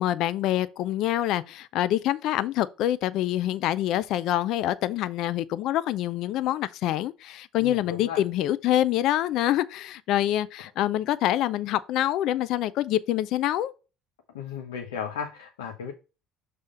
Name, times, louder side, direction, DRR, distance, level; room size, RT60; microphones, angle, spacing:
voice 1, 0.0-13.7, left 13 dB, 65° left, 0.5 m, -26 dB
voice 2, 7.6-8.2 14.3-15.9, left 7 dB, 85° left, 1.0 m, -35 dB
6.7 x 3.4 x 5.1 m
hypercardioid pair, 70°, 0 cm